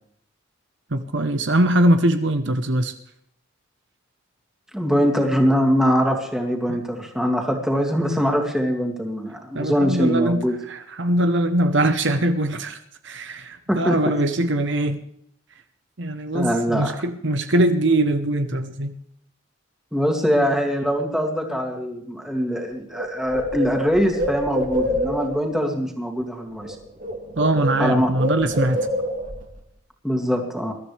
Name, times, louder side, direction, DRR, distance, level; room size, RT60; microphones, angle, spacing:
voice 1, 0.9-2.9 6.7-6.8 9.5-12.8 13.0-15.0 16.0-18.9 27.4-28.8, right 1 dB, 55° right, 8 dB, 1.0 m, -22 dB
voice 2, 4.7-10.5 13.7-14.1 16.3-17.0 19.9-26.8 27.8-28.1 30.0-30.7, equal, ahead, 1 dB, 2.5 m, -22 dB
Bird, 22.5-22.6 22.9-25.4 26.5-26.7 27.0-29.4, equal, 40° right, 2.9 m, -27 dB
22.0 x 13.5 x 3.4 m, 0.70 s
head